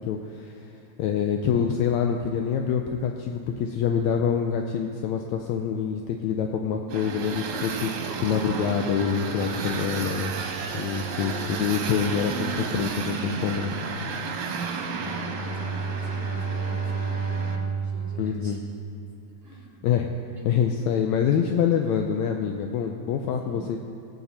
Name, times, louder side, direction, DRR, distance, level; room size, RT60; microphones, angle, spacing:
voice 1, 0.1-0.7 1.0-10.3 10.7-13.7 18.2-18.6 19.8-20.1 20.5-23.8, left 7 dB, 80° left, 4 dB, 1.7 m, -26 dB
sound 1, 6.9-17.6, right 4 dB, 70° right, 2.3 m, -32 dB
voice 2, 14.3-18.6 19.4-19.9 20.4-20.5 23.4-23.7, right 2 dB, 40° right, -4 dB, 1.5 m, -44 dB
Bowed string instrument, 15.0-19.4, right 5 dB, 65° left, 1.6 m, -31 dB
19.5 x 8.6 x 4.1 m, 2.9 s
omnidirectional pair, 3.7 m